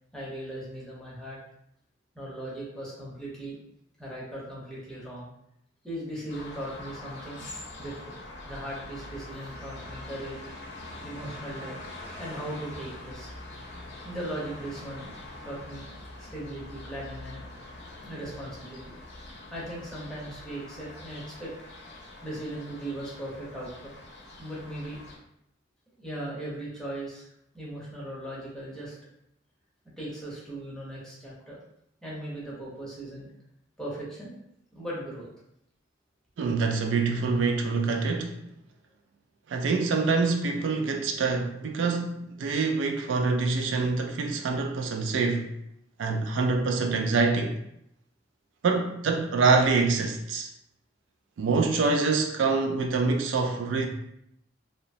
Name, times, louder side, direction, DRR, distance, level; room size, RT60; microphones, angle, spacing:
voice 1, 0.1-1.4 2.1-3.6 4.0-5.3 5.8-7.5 7.8-8.1 8.4-10.4 11.0-11.8 12.2-13.3 14.0-15.1 15.4-17.4 18.0-18.9 19.5-21.5 22.2-24.0 24.4-25.0 25.9-27.3 27.5-28.9 30.0-31.6 32.0-33.3 33.8-34.4 34.7-35.3, right 1 dB, 5° left, 0.8 m, -38 dB
sound 1, 6.3-25.2, left 2 dB, 65° left, 0.6 m, -44 dB
voice 2, 36.4-38.4 39.5-45.5 46.0-47.6 48.6-50.5 51.4-53.9, right 4 dB, 75° right, 0.3 m, -25 dB
2.8 x 2.1 x 2.6 m
head